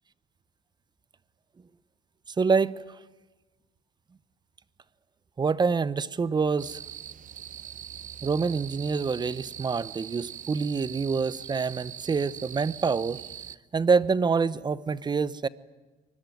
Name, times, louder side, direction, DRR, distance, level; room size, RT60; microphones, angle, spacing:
voice 1, 2.4-2.8 5.4-6.8 8.2-13.2 13.7-15.5, right 5 dB, 25° right, 17 dB, 0.9 m, -26 dB
sound 1, 6.6-13.6, right 10 dB, 50° right, 0.9 m, -42 dB
24.0 x 21.0 x 9.3 m, 1.2 s
cardioid pair, 110°, 17 cm